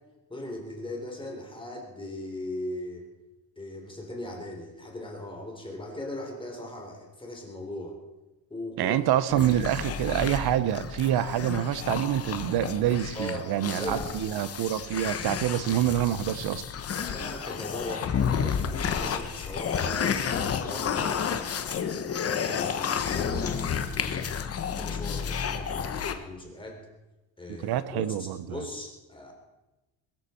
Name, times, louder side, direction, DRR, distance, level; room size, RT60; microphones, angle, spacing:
voice 1, 0.3-3.1 3.5-8.0 8.5-8.9 9.3-9.4 13.1-14.2 17.0-24.4 24.7-26.8 27.4-29.3, left 1 dB, 10° left, 1 dB, 3.5 m, -39 dB
voice 2, 8.8-16.6 27.6-28.4, right 11 dB, 55° right, 14 dB, 0.9 m, -26 dB
sound 1, 9.3-26.1, left 7 dB, 30° left, 1.1 m, -31 dB
21.5 x 13.5 x 4.4 m, 1.0 s
cardioid pair, 150°, 46 cm